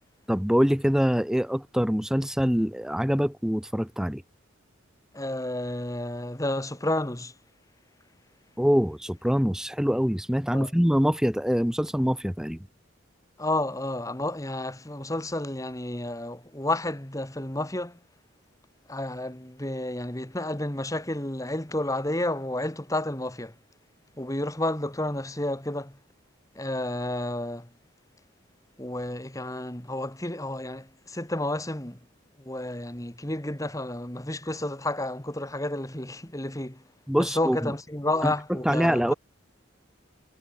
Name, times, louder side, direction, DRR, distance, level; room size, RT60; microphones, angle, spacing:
voice 1, 0.3-4.2 8.6-12.7 37.1-37.7 38.2-38.3 38.6-39.1, equal, 5° right, 0.8 m, -24 dB
voice 2, 5.1-7.3 10.5-10.7 13.4-18.0 18.9-23.5 24.2-26.0 26.6-27.7 28.8-32.0 32.4-36.8 37.2-39.1, left 1 dB, 15° left, 1.9 m, -31 dB
head